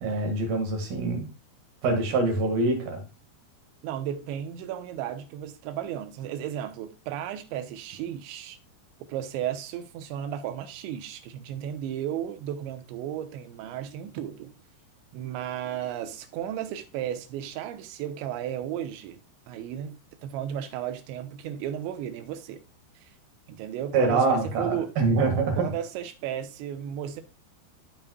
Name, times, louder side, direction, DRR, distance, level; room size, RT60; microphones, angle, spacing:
voice 1, 0.0-1.3 1.8-3.0 23.9-25.6, right 3 dB, 60° right, 3.2 m, -25 dB
voice 2, 3.8-8.6 9.1-14.5 15.1-19.2 19.5-22.6 23.0-23.1 23.5-24.9 25.6-27.2, right 10 dB, 85° right, 3.1 m, -34 dB
13.5 x 5.5 x 2.2 m
omnidirectional pair, 5.1 m